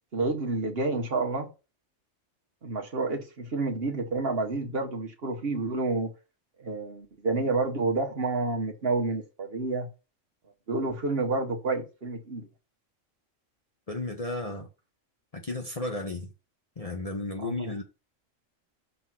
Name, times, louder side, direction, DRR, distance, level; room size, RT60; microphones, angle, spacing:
voice 1, 0.1-1.5 2.6-6.1 6.6-9.9 10.7-12.5 17.4-17.7, right 3 dB, 50° right, 1.3 m, -29 dB
voice 2, 13.9-14.7 15.3-16.3 16.8-17.8, left 2 dB, 35° left, 0.8 m, -33 dB
6.1 x 3.7 x 6.0 m
omnidirectional pair, 1.3 m